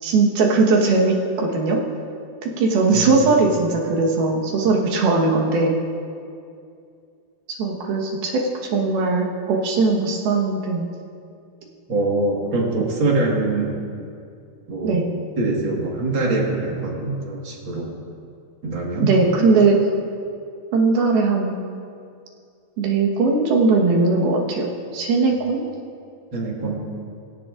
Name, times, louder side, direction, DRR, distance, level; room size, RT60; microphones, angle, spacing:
voice 1, 0.0-1.8 2.4-5.8 7.6-8.3 8.7-10.9 14.8-15.1 19.0-19.8 20.7-21.6 22.8-24.7 24.9-25.6, right 3 dB, 90° right, -1 dB, 3.3 m, -19 dB
voice 2, 11.9-13.8 14.7-15.0 15.4-17.9 18.6-19.1 26.3-26.8, right 2 dB, 45° right, -2 dB, 1.9 m, -23 dB
17.0 x 17.0 x 2.5 m, 2.4 s
omnidirectional pair, 4.2 m